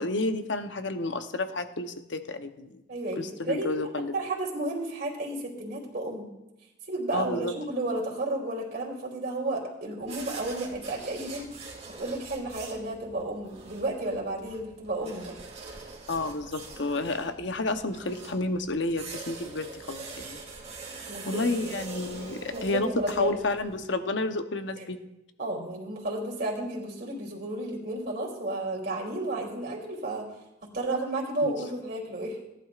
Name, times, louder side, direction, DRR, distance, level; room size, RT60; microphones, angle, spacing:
voice 1, 0.0-2.8 3.2-4.1 7.1-7.5 16.1-20.4 21.3-22.9 23.2-25.0 31.4-31.5, left 2 dB, 65° left, 7 dB, 0.9 m, -31 dB
voice 2, 2.9-3.7 4.1-6.3 6.9-11.5 12.0-15.4 21.1-21.7 22.5-23.4 24.8-24.9 25.4-30.3 30.7-32.4, right 2 dB, 50° right, -2 dB, 3.1 m, -32 dB
sound 1, 10.0-23.8, right 4 dB, 35° right, 2.5 m, -44 dB
18.0 x 11.0 x 2.5 m, 0.93 s
head